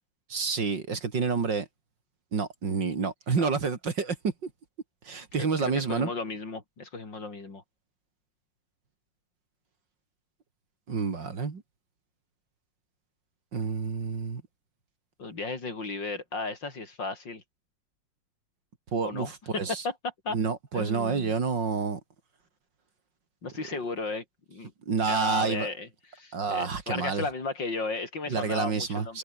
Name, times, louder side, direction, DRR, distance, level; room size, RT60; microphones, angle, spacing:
voice 1, 0.3-1.7 2.3-4.5 5.0-6.1 10.9-11.6 13.5-14.4 18.9-19.8 20.3-22.0 24.9-25.7 26.3-27.2 28.3-29.2, right 5 dB, 60° right, 3.3 m, -29 dB
voice 2, 5.6-7.6 15.2-17.4 19.0-20.4 20.7-21.4 23.4-24.7 25.1-29.2, left 3 dB, 60° left, 4.9 m, -35 dB
omnidirectional pair, 2.2 m